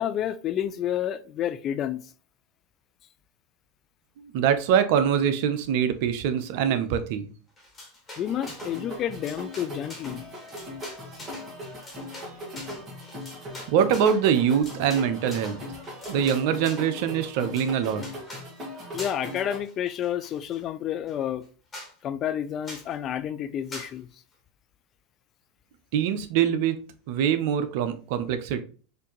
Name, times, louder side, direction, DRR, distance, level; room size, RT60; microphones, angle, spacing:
voice 1, 0.0-2.0 8.2-10.2 18.9-21.4 22.0-24.1, left 10 dB, 40° left, 0.3 m, -30 dB
voice 2, 4.2-7.3 13.7-15.6 16.1-18.0 25.9-26.8 27.1-28.6, right 8 dB, 65° right, 0.5 m, -24 dB
sound 1, 7.6-8.8 9.1-16.9 17.3-18.5 19.0-19.4 19.6-20.6 21.1-21.2 21.4-21.5 21.7-21.9 22.6-22.9 23.7-23.9, left 1 dB, 20° left, 1.5 m, -43 dB
sound 2, 8.2-19.6, left 1 dB, 30° right, 1.7 m, -39 dB
4.3 x 2.6 x 2.9 m
hypercardioid pair, 90°, 0 cm